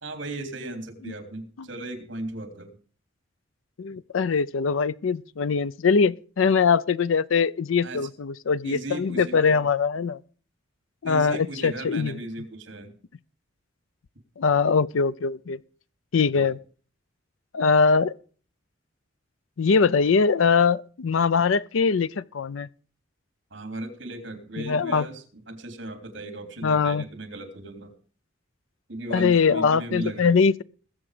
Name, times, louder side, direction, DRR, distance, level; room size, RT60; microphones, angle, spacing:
voice 1, 0.0-2.8 7.8-8.1 8.6-9.6 11.0-12.9 16.3-16.5 23.5-27.9 28.9-30.3, right 2 dB, 65° right, 3.2 m, -36 dB
voice 2, 3.8-10.2 11.0-12.2 14.4-15.6 16.1-16.6 17.5-18.1 19.6-22.7 24.6-25.1 26.6-27.0 29.1-30.6, left 5 dB, 90° left, 0.5 m, -22 dB
21.0 x 7.6 x 5.0 m
head